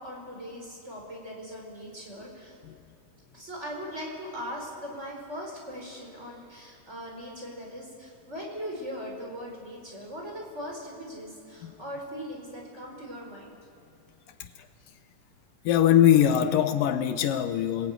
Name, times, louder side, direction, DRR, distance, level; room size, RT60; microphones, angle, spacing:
voice 1, 0.0-2.6 3.3-13.5, equal, 20° right, -1 dB, 5.0 m, -39 dB
voice 2, 15.7-17.9, left 10 dB, 85° left, 8 dB, 2.7 m, -22 dB
27.5 x 21.0 x 9.4 m, 2.6 s
omnidirectional pair, 3.9 m